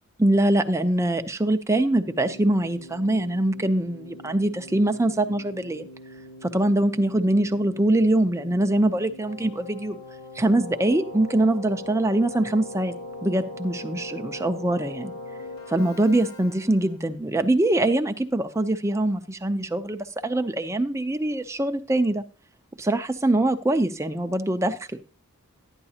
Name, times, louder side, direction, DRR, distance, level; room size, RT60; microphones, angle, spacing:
voice 1, 0.2-5.9 6.4-10.0 10.4-12.9 13.2-15.1 15.7-22.2 22.8-25.0, right 1 dB, 15° right, 8 dB, 0.6 m, -23 dB
Keyboard (musical), 2.0-17.1, left 2 dB, 75° left, 3.2 m, -41 dB
12.0 x 9.8 x 2.8 m, 0.36 s
head